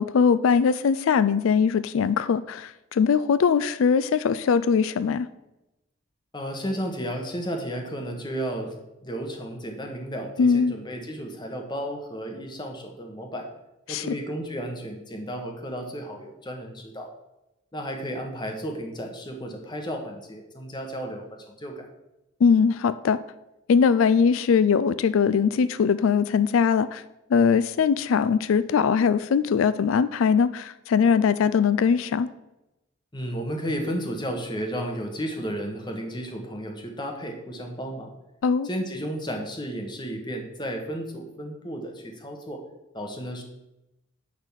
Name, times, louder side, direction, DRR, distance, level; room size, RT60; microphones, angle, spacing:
voice 1, 0.0-5.3 10.4-10.7 13.9-14.1 22.4-23.2 23.7-27.0 27.3-32.3 38.4-38.7, left 6 dB, 90° left, 15 dB, 0.4 m, -21 dB
voice 2, 6.3-8.8 9.0-13.5 13.9-17.1 17.7-21.9 33.1-38.1 38.6-42.6 42.9-43.4, equal, 20° left, 3 dB, 1.4 m, -33 dB
10.5 x 4.1 x 7.2 m, 0.94 s
head